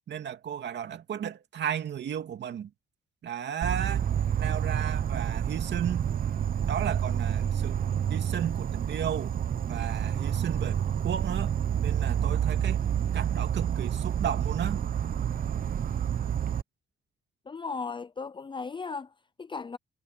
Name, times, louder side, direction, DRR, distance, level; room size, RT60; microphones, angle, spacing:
voice 1, 0.1-2.7 3.2-4.1 4.4-6.1 6.7-7.8 8.1-9.3 9.7-11.5 11.8-12.8 13.1-14.8, right 9 dB, 60° right, 2.6 m, -34 dB
Insect, 3.6-16.6, right 9 dB, 45° right, 0.8 m, -29 dB
voice 2, 17.5-19.8, left 4 dB, 25° left, 0.6 m, -37 dB
cardioid pair, 90°, 20 cm